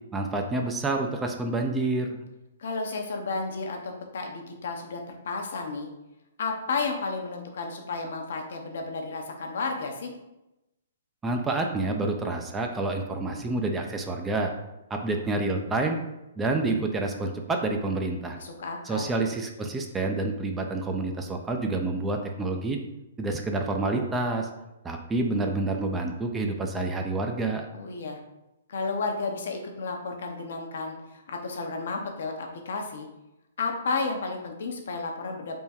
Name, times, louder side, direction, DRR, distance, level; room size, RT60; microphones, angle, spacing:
voice 1, 0.1-2.3 11.2-14.5 14.9-16.0 16.4-18.4 18.8-22.8 23.2-24.5 24.8-27.7, right 2 dB, 15° right, 3 dB, 0.4 m, -28 dB
voice 2, 2.6-5.9 6.4-10.1 18.4-19.1 27.7-28.2 28.7-33.1 33.6-35.6, left 4 dB, 65° left, 3 dB, 0.7 m, -32 dB
3.6 x 2.2 x 4.2 m, 0.93 s
hypercardioid pair, 130°, 0 cm